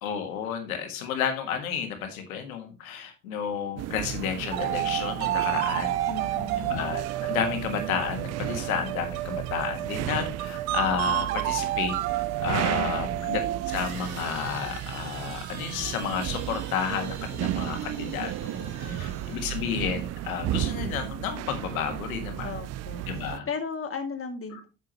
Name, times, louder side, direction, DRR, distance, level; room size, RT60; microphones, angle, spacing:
voice 1, 0.0-6.0 6.6-12.0 12.4-13.4 13.7-22.5 23.1-23.5, left 7 dB, 85° left, 6 dB, 1.7 m, -31 dB
sound 1, 3.8-23.4, right 14 dB, 40° right, 0.4 m, -34 dB
sound 2, 4.5-14.0, right 14 dB, 80° right, 0.8 m, -30 dB
voice 2, 6.1-6.9 12.7-13.3 18.5-19.8 22.4-23.0 23.5-24.7, left 4 dB, 30° left, 4 dB, 2.2 m, -37 dB
sound 3, 13.7-19.8, right 6 dB, 60° right, 2.6 m, -45 dB
8.6 x 7.3 x 2.9 m, 0.31 s
hypercardioid pair, 55°, 41 cm